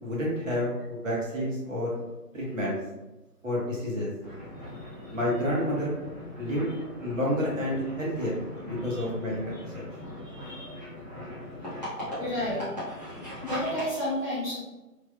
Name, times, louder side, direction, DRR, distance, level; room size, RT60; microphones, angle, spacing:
voice 1, 0.0-1.9 2.3-2.8 3.4-4.1 5.1-5.9 6.4-6.7 7.0-8.4 8.6-9.8, equal, 50° right, -5 dB, 1.1 m, -29 dB
sound 1, 4.2-13.9, left 1 dB, 25° right, 1.0 m, -40 dB
voice 2, 4.8-5.2 8.8-9.1 10.2-10.8 12.2-12.7 12.9-14.6, left 1 dB, 15° left, -16 dB, 1.3 m, -33 dB
3.4 x 2.5 x 2.3 m, 1.1 s
figure-of-eight pair, 165°, 48 cm